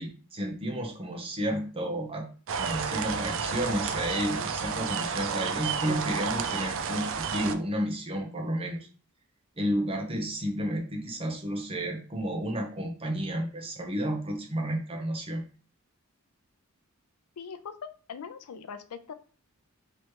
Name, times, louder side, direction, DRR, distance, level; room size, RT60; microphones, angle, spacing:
voice 1, 0.0-2.3 2.6-8.9 9.6-15.4, equal, 25° right, 2 dB, 0.9 m, -31 dB
sound 1, 2.5-7.6, right 6 dB, 60° right, 0.4 m, -31 dB
voice 2, 17.4-19.1, left 6 dB, 85° left, 11 dB, 0.5 m, -41 dB
3.1 x 3.1 x 4.6 m, 0.39 s
head